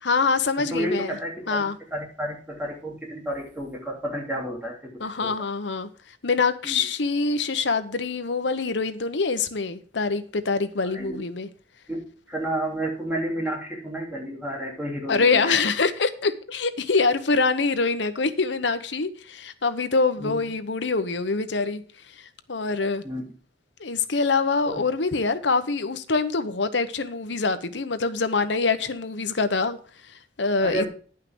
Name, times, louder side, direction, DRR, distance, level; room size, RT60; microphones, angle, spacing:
voice 1, 0.0-1.2 1.5-1.8 5.0-5.9 6.2-11.5 15.1-21.8 22.2-23.0 23.8-29.8 30.4-30.9, left 4 dB, 70° left, 0.9 m, -25 dB
voice 2, 0.6-1.6 1.9-4.9 5.2-5.3 6.6-6.8 10.8-11.2 11.9-15.6 20.2-20.4 23.0-23.2 24.7-24.8 30.6-30.9, right 1 dB, 10° right, 3.2 m, -31 dB
10.5 x 5.7 x 6.1 m
head